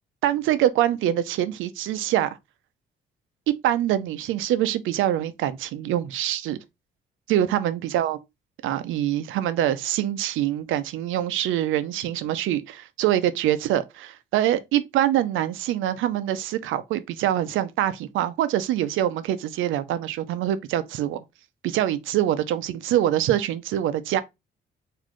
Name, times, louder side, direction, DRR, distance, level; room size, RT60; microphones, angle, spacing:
voice 1, 0.2-2.3 3.5-6.6 7.3-8.2 8.6-21.2 21.6-24.2, right 12 dB, 85° right, 0.5 m, -24 dB
4.1 x 2.6 x 3.0 m
cardioid pair, 90°, 20 cm